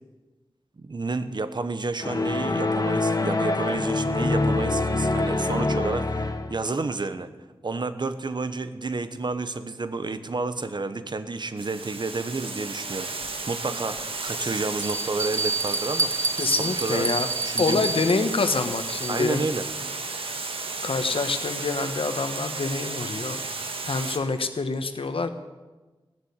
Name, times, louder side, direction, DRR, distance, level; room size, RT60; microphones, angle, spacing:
voice 1, 0.8-7.3 7.6-13.1 13.5-16.1 16.4-17.1 17.4-17.9 19.1-19.7, right 3 dB, 55° right, 11 dB, 1.0 m, -30 dB
sound 1, 2.0-6.6, left 2 dB, 40° left, 1.1 m, -25 dB
Water, 11.6-24.2, right 3 dB, 80° right, 1.5 m, -33 dB
Bell, 13.2-13.3 14.0-14.1 14.8-19.4, right 3 dB, 35° right, 0.6 m, -29 dB
voice 2, 16.4-17.3 17.6-19.4 20.8-23.4 23.8-25.3, left 3 dB, 75° left, 8 dB, 1.2 m, -26 dB
16.5 x 6.9 x 9.6 m, 1.2 s
wide cardioid pair, 75°, 9 cm